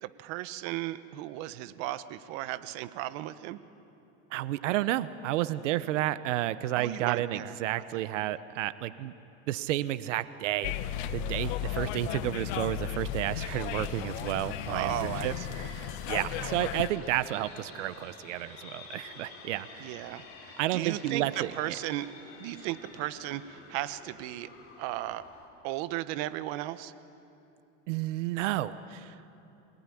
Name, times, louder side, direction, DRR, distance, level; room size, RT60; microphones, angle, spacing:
voice 1, 0.0-3.6 6.8-7.6 7.9-8.1 14.7-15.7 16.1-16.6 19.8-22.1 22.4-24.5 24.8-25.2 25.6-26.9, right 15 dB, 60° right, 13 dB, 1.1 m, -36 dB
voice 2, 4.3-9.1 9.5-10.7 11.1-15.3 16.1-19.9 20.6-21.5 27.9-29.3, right 14 dB, 90° right, 14 dB, 1.0 m, -31 dB
sound 1, 10.6-16.9, left 11 dB, 65° left, 1.2 m, -35 dB
sound 2, 13.3-25.5, left 4 dB, 35° left, 4.6 m, -50 dB
26.5 x 19.0 x 10.0 m, 2.8 s
supercardioid pair, 140°, 36 cm